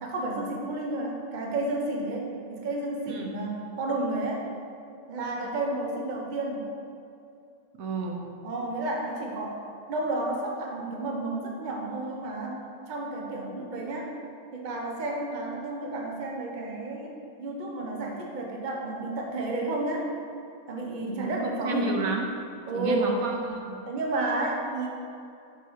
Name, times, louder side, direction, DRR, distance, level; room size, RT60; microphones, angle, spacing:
voice 1, 0.0-4.5 5.1-6.6 8.4-9.6 9.9-12.6 12.9-14.1 14.5-20.1 20.7-22.0 22.7-23.2 23.9-24.9, right 2 dB, 40° right, -1 dB, 1.0 m, -31 dB
voice 2, 7.7-8.2 21.0-22.3 22.7-23.8, right 3 dB, 85° right, 2 dB, 1.3 m, -31 dB
6.9 x 6.0 x 4.7 m, 2.6 s
omnidirectional pair, 1.4 m